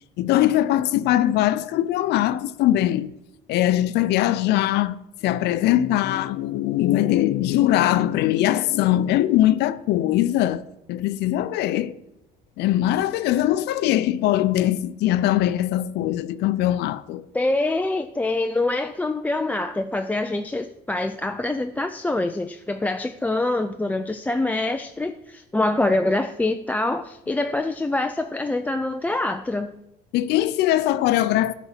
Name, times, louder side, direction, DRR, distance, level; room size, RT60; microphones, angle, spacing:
voice 1, 0.2-3.1 3.5-10.6 10.9-11.9 12.6-17.2 30.1-31.5, left 13 dB, 80° left, 0.5 m, -21 dB
voice 2, 17.3-29.7, left 2 dB, 10° left, 0.3 m, -25 dB
9.6 x 4.1 x 7.4 m
cardioid pair, 110°, 17 cm